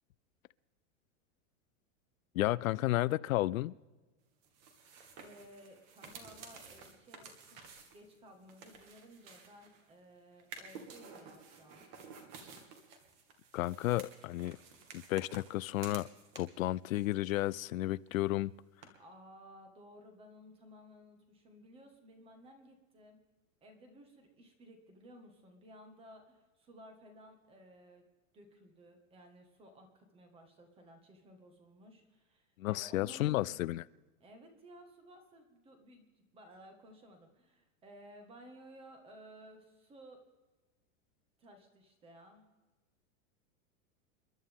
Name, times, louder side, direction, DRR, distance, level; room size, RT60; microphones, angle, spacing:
voice 1, 2.3-3.7 13.5-14.6 14.9-16.1 16.4-18.5 32.6-33.8, left 17 dB, 75° left, 18 dB, 0.5 m, -32 dB
sound 1, 4.4-9.9 10.4-16.7 16.9-17.8 18.1-18.2 18.8-18.9, right 5 dB, 35° right, 2.1 m, -53 dB
voice 2, 5.2-7.6 7.9-11.9 19.0-23.2 23.6-28.1 28.3-33.6 34.2-40.2 41.4-42.4, equal, 15° right, 5 dB, 1.7 m, -56 dB
28.5 x 11.5 x 3.6 m, 1.2 s
supercardioid pair, 175°, 41 cm